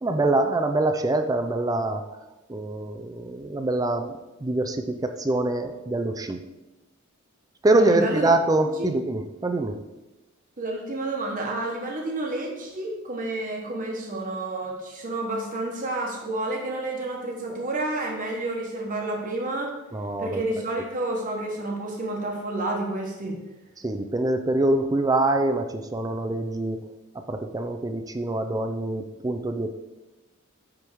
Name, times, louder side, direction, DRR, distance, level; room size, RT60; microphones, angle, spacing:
voice 1, 0.0-2.0 2.5-6.4 7.6-9.8 19.9-20.4 23.8-26.8 27.3-29.7, right 2 dB, 15° right, 6 dB, 0.4 m, -24 dB
voice 2, 7.7-8.3 8.6-8.9 10.6-19.7 20.2-23.4, right 2 dB, 40° right, -1 dB, 1.2 m, -30 dB
9.8 x 3.6 x 4.6 m, 1.0 s
head